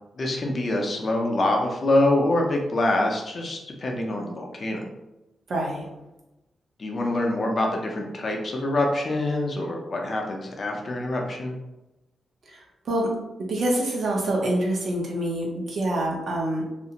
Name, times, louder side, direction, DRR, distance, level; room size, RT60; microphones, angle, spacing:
voice 1, 0.2-4.8 6.8-11.6, left 1 dB, 45° left, 1 dB, 0.5 m, -25 dB
voice 2, 5.5-5.9 12.5-13.1 13.5-16.7, right 1 dB, 60° right, -1 dB, 0.7 m, -26 dB
2.4 x 2.0 x 2.8 m, 0.97 s
cardioid pair, 105°, 0 cm